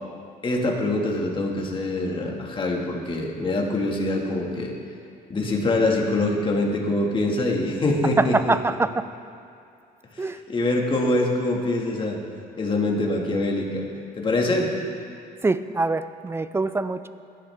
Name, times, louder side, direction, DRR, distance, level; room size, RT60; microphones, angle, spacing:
voice 1, 0.4-4.7 5.3-8.6 10.1-12.2 12.6-13.8 14.2-14.7, left 2 dB, 30° left, -1 dB, 1.9 m, -24 dB
voice 2, 8.2-9.1 10.2-10.4 15.4-17.1, right 3 dB, 15° right, 13 dB, 0.4 m, -24 dB
17.0 x 11.0 x 3.5 m, 2.5 s
cardioid pair, 110°, 17 cm